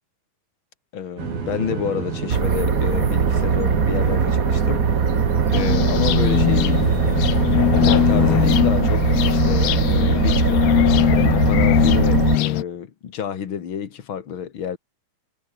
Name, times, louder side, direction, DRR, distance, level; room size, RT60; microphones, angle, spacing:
voice 1, 0.9-4.9 5.5-6.9 7.7-10.7 11.1-14.8, left 8 dB, 45° left, 1.8 m, -29 dB
sound 1, 1.2-8.5, right 5 dB, 75° right, 6.7 m, -29 dB
sound 2, 2.3-12.4, right 6 dB, 50° right, 1.0 m, -20 dB
sound 3, 5.5-12.6, left 15 dB, 90° left, 3.1 m, -20 dB
omnidirectional pair, 4.3 m